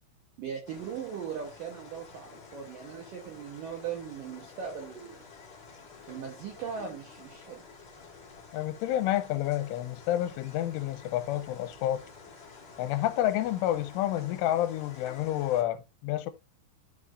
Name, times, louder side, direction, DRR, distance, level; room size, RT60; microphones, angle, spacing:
voice 1, 0.4-5.2 6.0-7.6, right 7 dB, 85° right, 1.9 m, -39 dB
sound 1, 0.6-15.6, left 4 dB, 35° left, 1.6 m, -50 dB
voice 2, 8.5-12.0 12.8-16.3, left 13 dB, 85° left, 3.1 m, -29 dB
13.5 x 5.0 x 2.5 m
omnidirectional pair, 5.7 m